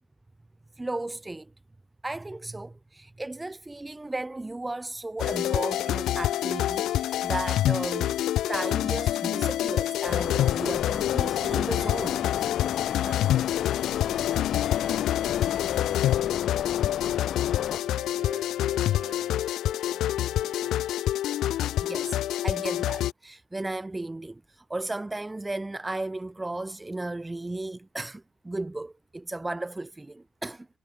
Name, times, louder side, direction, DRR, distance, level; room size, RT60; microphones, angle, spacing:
voice 1, 0.8-1.5 2.0-12.2 21.8-30.7, right 2 dB, 15° right, 1.7 m, -35 dB
sound 1, 5.2-23.1, left 13 dB, 80° left, 0.7 m, -27 dB
sound 2, 10.1-17.8, left 9 dB, 65° left, 3.0 m, -33 dB
voice 2, 13.0-13.4 13.9-20.8, right 7 dB, 55° right, 4.4 m, -50 dB
cardioid pair, 90°, 0 cm